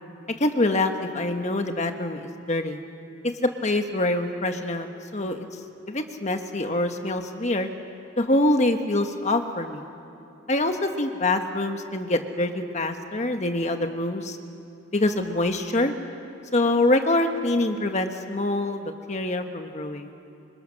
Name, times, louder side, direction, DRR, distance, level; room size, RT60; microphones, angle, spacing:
voice 1, 0.4-2.8 3.6-5.5 5.9-7.7 8.2-9.8 10.5-14.4 14.9-15.9 16.5-20.1, left 2 dB, 35° left, 6 dB, 1.4 m, -25 dB
27.0 x 26.0 x 6.6 m, 2.7 s
head